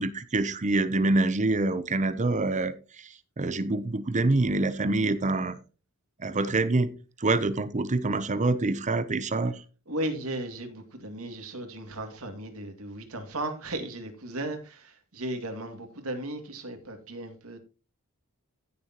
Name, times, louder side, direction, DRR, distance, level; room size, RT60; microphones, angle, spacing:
voice 1, 0.0-5.6 6.2-9.6, right 2 dB, 35° right, 0.7 m, -26 dB
voice 2, 9.9-17.6, right 1 dB, 70° right, 2.3 m, -36 dB
16.0 x 6.9 x 3.0 m
head